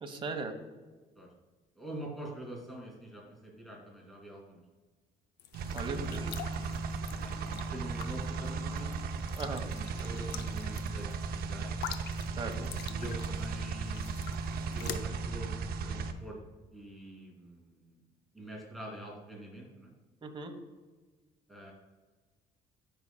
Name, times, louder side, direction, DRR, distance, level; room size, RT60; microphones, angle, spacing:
voice 1, 0.0-0.5 5.7-6.3 9.4-9.6 12.4-12.7 20.2-20.5, right 3 dB, 30° right, 5 dB, 1.2 m, -37 dB
voice 2, 1.8-4.6 7.1-11.8 12.9-14.1 14.7-15.5 15.8-16.4 16.7-18.0 18.3-19.9 21.5-21.7, right 1 dB, ahead, -3 dB, 2.5 m, -45 dB
sound 1, 5.4-15.0, left 9 dB, 85° left, 0.6 m, -46 dB
sound 2, 5.5-16.1, right 4 dB, 65° right, 0.7 m, -36 dB
12.0 x 5.6 x 2.3 m, 1.3 s
cardioid pair, 110°, 17 cm